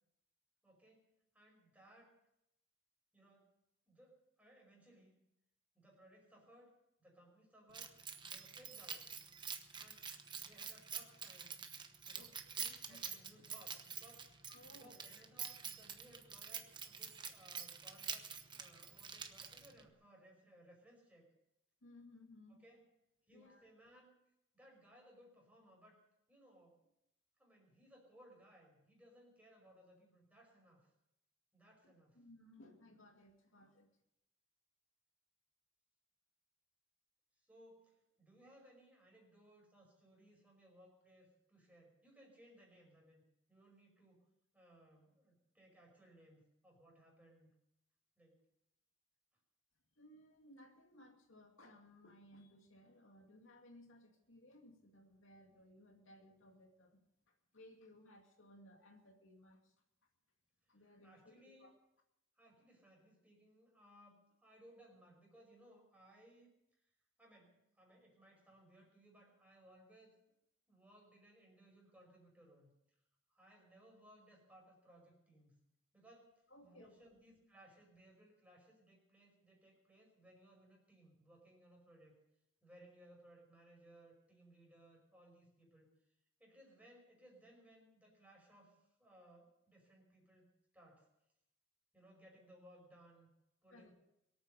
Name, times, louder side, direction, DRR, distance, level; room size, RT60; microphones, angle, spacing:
voice 1, 0.6-2.1 3.1-3.5 3.9-5.1 5.7-6.7 7.0-7.9 8.2-9.1 9.8-10.1 10.4-11.6 12.0-12.4 12.8-14.3 14.6-21.3 22.5-22.8 23.3-24.2 24.5-26.0 26.3-26.9 27.4-30.9 31.5-32.2 37.4-43.2 43.5-44.3 44.5-47.5 48.2-48.4 60.7-61.7 62.3-66.5 67.2-70.1 70.7-72.7 73.3-75.6 75.9-82.2 82.6-86.1 86.4-90.5 90.7-91.1 91.9-93.3 93.6-93.9, right 1 dB, 5° right, -1 dB, 5.4 m, -64 dB
Keys jangling, 7.7-19.9, right 7 dB, 20° right, 1.0 m, -47 dB
voice 2, 12.2-13.1 14.5-15.2 21.8-22.6 23.3-23.7 31.8-33.9 50.0-59.7 60.7-61.7 76.5-76.9 93.7-94.0, left 1 dB, 80° left, 2 dB, 2.5 m, -61 dB
23.0 x 8.7 x 6.9 m, 0.82 s
head